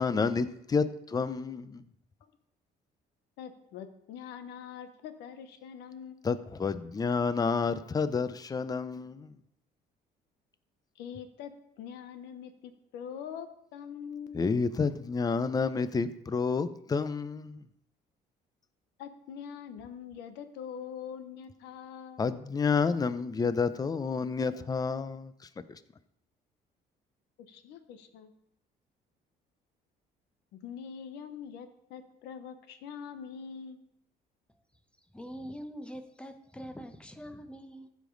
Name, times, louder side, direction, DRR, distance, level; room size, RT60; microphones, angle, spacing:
voice 1, 0.0-1.8 6.2-9.3 14.3-17.7 22.2-25.8, left 5 dB, 20° left, 13 dB, 0.6 m, -30 dB
voice 2, 3.4-6.4 10.9-11.5 11.8-14.5 19.0-22.3 27.4-28.3 30.5-33.8, left 7 dB, 85° left, 9 dB, 1.0 m, -44 dB
voice 3, 35.1-37.9, equal, 5° left, 7 dB, 0.9 m, -43 dB
15.0 x 5.2 x 3.9 m, 0.76 s
cardioid pair, 110°, 17 cm